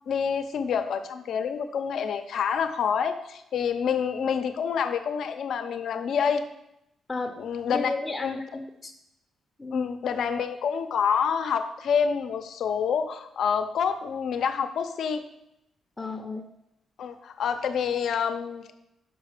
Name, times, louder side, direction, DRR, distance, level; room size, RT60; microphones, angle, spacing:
voice 1, 0.1-6.4 7.4-7.9 8.2-8.4 9.7-15.2 17.0-18.7, left 7 dB, 70° left, 8 dB, 0.7 m, -27 dB
voice 2, 7.7-8.9 9.6-9.9 16.0-16.5, left 3 dB, 20° left, 2 dB, 0.7 m, -33 dB
6.2 x 4.9 x 6.6 m, 0.83 s
cardioid pair, 80°, 0 cm